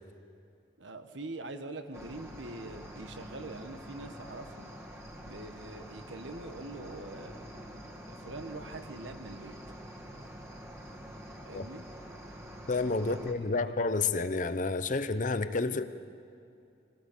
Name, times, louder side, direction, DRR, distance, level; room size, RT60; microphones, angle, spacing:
voice 1, 0.8-4.7 5.2-7.5 8.1-9.5 11.4-11.8 13.0-13.7 15.6-15.9, right 2 dB, 85° right, 8 dB, 1.4 m, -44 dB
Cricket, 1.9-13.3, equal, 15° right, 1.8 m, -46 dB
voice 2, 12.7-15.9, left 3 dB, 45° left, 12 dB, 0.7 m, -30 dB
23.0 x 17.5 x 6.8 m, 2.7 s
head